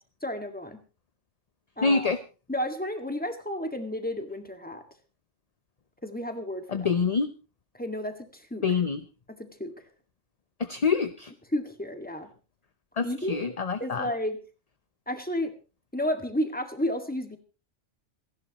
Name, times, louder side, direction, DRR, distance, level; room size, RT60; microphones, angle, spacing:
voice 1, 0.2-0.8 1.8-2.1 2.5-4.8 6.0-6.9 7.7-8.6 9.3-9.7 11.5-12.3 13.0-14.4 15.1-15.5 15.9-17.4, left 1 dB, 5° left, 6 dB, 1.9 m, -32 dB
voice 2, 1.8-2.2 6.7-7.3 8.6-9.0 10.6-11.3 13.0-14.1, left 5 dB, 35° left, 10 dB, 0.7 m, -26 dB
28.0 x 11.0 x 3.0 m, 0.33 s
omnidirectional pair, 1.2 m